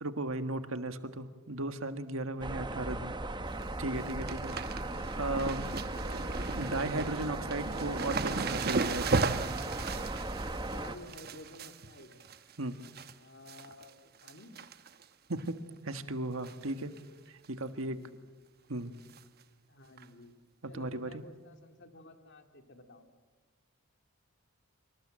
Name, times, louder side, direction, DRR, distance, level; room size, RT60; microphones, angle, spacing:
voice 1, 0.0-3.1 3.8-4.7 5.2-5.7 6.2-9.3 12.6-12.8 15.3-15.6 15.8-16.9 17.3-18.0 18.7-18.9 20.7-21.2, right 2 dB, 70° right, 9 dB, 1.6 m, -36 dB
sound 1, 2.4-11.0, right 2 dB, 20° right, 1.2 m, -37 dB
sound 2, 3.3-3.6 3.9-13.1 13.5-13.9 14.2-15.0 15.4-15.5 16.4-16.7 17.0-17.1 17.4-17.5 19.1-19.2 20.0-20.1, right 4 dB, 45° right, 1.0 m, -36 dB
voice 2, 10.6-12.2 13.2-14.5 17.9-18.2 19.7-20.4 20.7-23.0, left 2 dB, 55° left, 6 dB, 2.5 m, -53 dB
25.5 x 25.0 x 7.7 m, 1.3 s
head